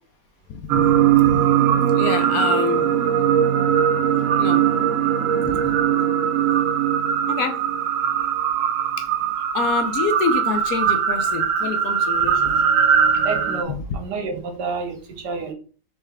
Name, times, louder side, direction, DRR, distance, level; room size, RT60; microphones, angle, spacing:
voice 1, 0.5-1.5 1.9-2.9 4.4-4.6 5.4-5.7 7.3-7.6 9.0-9.1 9.5-12.8, left 5 dB, 70° left, 1.0 m, -27 dB
sound 1, 0.7-13.6, right 9 dB, 65° right, 0.9 m, -20 dB
voice 2, 13.2-15.5, right 4 dB, 85° right, 1.6 m, -29 dB
4.6 x 3.2 x 3.4 m
omnidirectional pair, 1.8 m